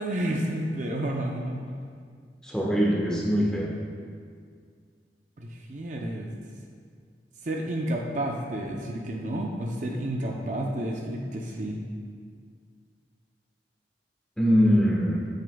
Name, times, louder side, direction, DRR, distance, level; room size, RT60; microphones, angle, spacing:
voice 1, 0.0-1.7 5.4-6.3 7.4-11.8, right 1 dB, 45° right, 0 dB, 0.6 m, -30 dB
voice 2, 2.4-3.7 14.4-15.2, equal, 5° left, -5 dB, 1.3 m, -22 dB
9.3 x 8.6 x 2.3 m, 2.1 s
head